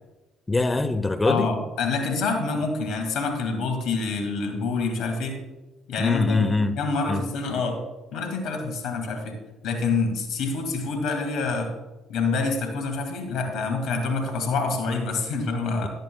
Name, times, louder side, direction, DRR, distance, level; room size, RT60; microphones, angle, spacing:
voice 1, 0.5-1.5 6.0-6.8 7.1-7.2, left 3 dB, 20° left, 11 dB, 0.9 m, -23 dB
voice 2, 1.3-5.4 5.9-6.5 6.8-7.8 8.1-9.4 9.6-11.7 12.1-15.9, left 4 dB, 70° left, 4 dB, 1.9 m, -27 dB
15.5 x 10.5 x 2.3 m, 1.1 s
hypercardioid pair, 55°, 0 cm